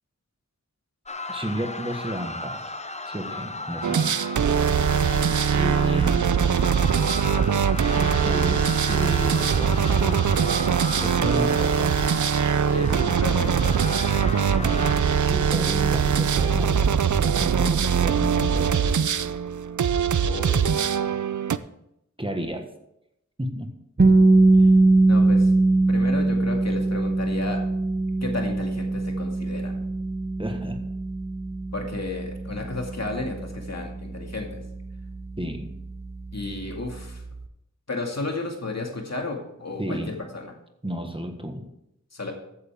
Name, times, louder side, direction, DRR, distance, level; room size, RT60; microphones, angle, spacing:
sound 1, 1.1-15.0, left 3 dB, 20° left, 0.6 m, -35 dB
voice 1, 1.3-2.7 3.0-4.2 5.5-6.4 7.9-10.3 11.0-12.0 14.5-14.9 15.3-18.8 22.2-22.7 23.4-23.7 24.5-24.7 30.4-30.8 35.4-35.7 39.8-40.2 40.8-41.7, equal, 15° right, 5 dB, 1.4 m, -32 dB
sound 2, 3.8-21.6, right 7 dB, 75° right, 0.5 m, -22 dB
voice 2, 12.7-13.9 20.2-20.8 25.1-25.5 25.9-27.6 28.2-29.8 31.7-34.6 36.3-37.2 37.9-40.5 42.1-42.3, left 3 dB, 60° left, 1 dB, 2.3 m, -33 dB
sound 3, 24.0-35.8, right 2 dB, 35° right, 0.9 m, -21 dB
14.5 x 8.6 x 3.6 m, 0.81 s
wide cardioid pair, 70°, 30 cm